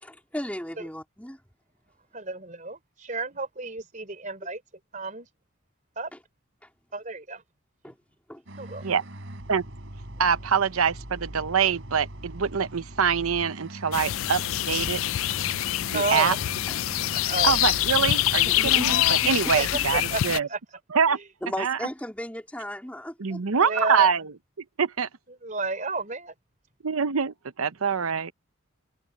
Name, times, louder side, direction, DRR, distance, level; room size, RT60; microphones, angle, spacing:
voice 1, 0.0-1.4 6.6-6.7 7.8-7.9 8.3-8.4 16.7-17.1 18.0-18.1 18.4-19.0 19.2-19.5 21.4-23.4, left 1 dB, 5° left, 3.6 m, -36 dB
voice 2, 2.1-4.6 4.9-5.3 6.0-6.1 6.9-7.4 8.6-8.8 15.9-16.4 17.1-17.6 19.5-20.6 21.1-21.2 23.6-24.1 25.4-26.3, right 3 dB, 35° right, 3.8 m, -31 dB
sound 1, 8.5-20.2, right 1 dB, 60° right, 3.4 m, -41 dB
voice 3, 10.2-15.0 15.9-16.3 17.4-20.5 20.9-21.2 21.6-21.8 23.2-24.3 24.8-25.1 26.8-28.3, right 6 dB, 85° right, 0.8 m, -25 dB
sound 2, 13.9-20.4, left 14 dB, 70° left, 0.4 m, -25 dB
open air
head